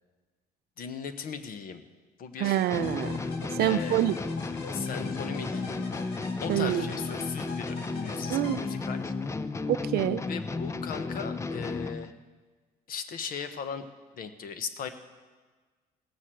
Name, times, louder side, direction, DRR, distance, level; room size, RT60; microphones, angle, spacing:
voice 1, 0.8-1.8 2.2-2.6 3.6-4.2 4.7-5.8 6.4-9.1 10.3-12.1 12.9-13.8 14.2-14.9, left 6 dB, 60° left, 10 dB, 1.1 m, -38 dB
sound 1, 2.4-9.3, left 3 dB, 85° left, 2.1 m, -44 dB
voice 2, 2.4-3.2 3.5-4.1 6.5-6.8 8.3-8.6 9.7-10.2, right 13 dB, 65° right, 12 dB, 0.5 m, -26 dB
sound 2, 2.7-12.1, left 3 dB, 15° left, 0.5 m, -33 dB
16.5 x 6.5 x 7.6 m, 1.4 s
cardioid pair, 110°, 17 cm